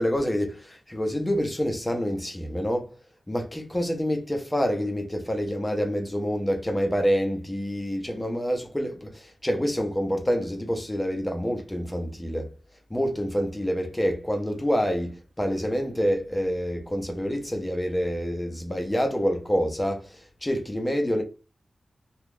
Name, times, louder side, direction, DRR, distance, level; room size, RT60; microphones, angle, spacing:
voice 1, 0.0-2.9 3.3-12.5 12.9-21.2, equal, 10° left, 0.7 m, -27 dB
2.9 x 2.3 x 3.5 m
wide cardioid pair, 115°, 0 cm